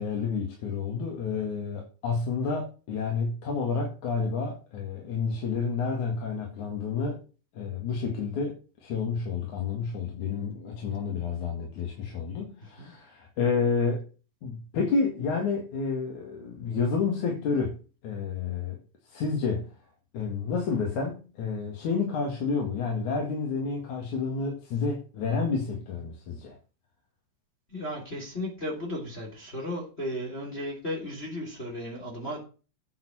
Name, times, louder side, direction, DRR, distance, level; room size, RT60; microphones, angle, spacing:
voice 1, 0.0-7.2 7.5-14.0 14.4-17.8 18.0-18.8 19.1-19.7 20.1-26.6, left 5 dB, 70° left, 3.5 m, -30 dB
voice 2, 27.7-32.4, left 1 dB, 20° left, 3.3 m, -35 dB
9.3 x 7.0 x 6.2 m
omnidirectional pair, 3.6 m